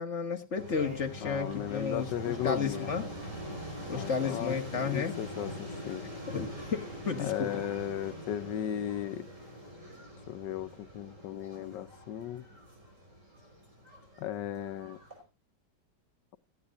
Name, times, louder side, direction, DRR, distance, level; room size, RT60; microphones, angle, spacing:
voice 1, 0.0-3.0 3.9-5.1 6.3-7.6, left 5 dB, 45° left, 1.7 m, -33 dB
sound 1, 0.6-15.2, equal, 45° right, 5.5 m, -43 dB
voice 2, 1.2-2.9 3.9-6.1 7.2-9.3 10.3-12.4 14.2-15.0, left 11 dB, 90° left, 1.5 m, -36 dB
17.0 x 15.0 x 2.5 m
omnidirectional pair, 1.9 m